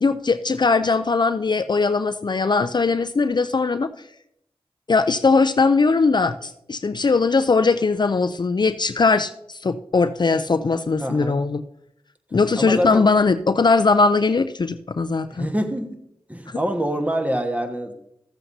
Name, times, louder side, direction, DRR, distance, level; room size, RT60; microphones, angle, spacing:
voice 1, 0.0-3.9 4.9-9.3 9.6-11.6 12.3-15.5 16.5-16.6, left 4 dB, 45° left, 10 dB, 0.4 m, -20 dB
voice 2, 11.0-11.4 12.6-13.0 15.3-16.0 16.3-17.9, equal, 15° right, 4 dB, 1.3 m, -25 dB
13.5 x 7.6 x 2.7 m, 0.75 s
cardioid pair, 40°, 10 cm